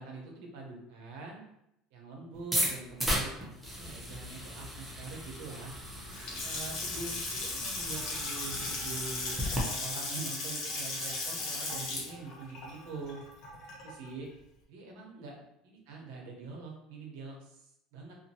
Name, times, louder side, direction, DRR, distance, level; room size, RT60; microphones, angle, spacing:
voice 1, 0.0-1.4 1.9-5.7 6.4-13.2 13.8-14.3 14.7-18.1, right 3 dB, 85° right, 0 dB, 0.8 m, -44 dB
sound 1, 2.4-9.6, equal, 5° right, 0.6 m, -36 dB
Water tap faucet / Sink (filling or washing) / Splash splatter, 6.0-14.1, left 2 dB, 55° left, 0.8 m, -37 dB
2.6 x 2.5 x 2.7 m, 0.79 s
cardioid pair, 155°, 0 cm